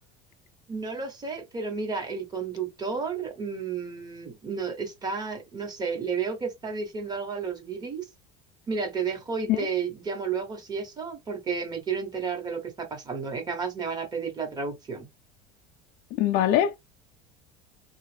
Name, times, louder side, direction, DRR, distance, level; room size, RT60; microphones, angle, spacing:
voice 1, 0.7-8.1 8.7-15.1, right 5 dB, 20° right, 1.2 m, -32 dB
voice 2, 16.2-16.7, left 11 dB, 55° left, 0.4 m, -22 dB
3.0 x 2.4 x 3.3 m
cardioid pair, 135°, 18 cm